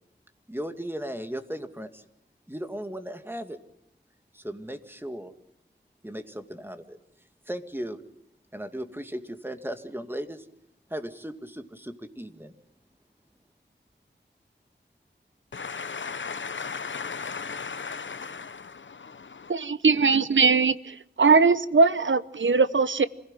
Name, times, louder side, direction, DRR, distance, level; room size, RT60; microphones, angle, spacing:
voice 1, 0.5-2.0 2.5-3.6 4.3-5.3 6.0-7.0 7.5-8.0 8.5-10.5 10.9-12.5, equal, 10° right, 7 dB, 2.2 m, -36 dB
voice 2, 15.5-19.5, left 5 dB, 80° left, 15 dB, 0.9 m, -36 dB
voice 3, 19.5-23.1, right 4 dB, 85° right, 15 dB, 0.9 m, -20 dB
27.0 x 16.5 x 9.0 m, 0.79 s
wide cardioid pair, 55°, 19 cm